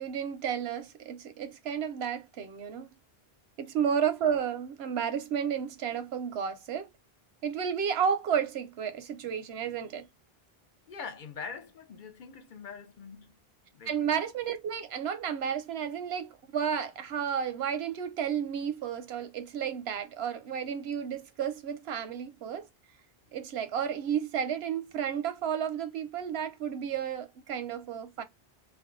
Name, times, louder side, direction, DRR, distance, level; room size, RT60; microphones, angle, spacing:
voice 1, 0.0-2.9 3.6-6.9 7.4-10.1 13.9-22.7 23.3-28.2, right 8 dB, 90° right, 0.9 m, -32 dB
voice 2, 10.9-13.3 13.7-13.9, left 5 dB, 55° left, 0.7 m, -43 dB
2.5 x 2.2 x 3.7 m
omnidirectional pair, 1.0 m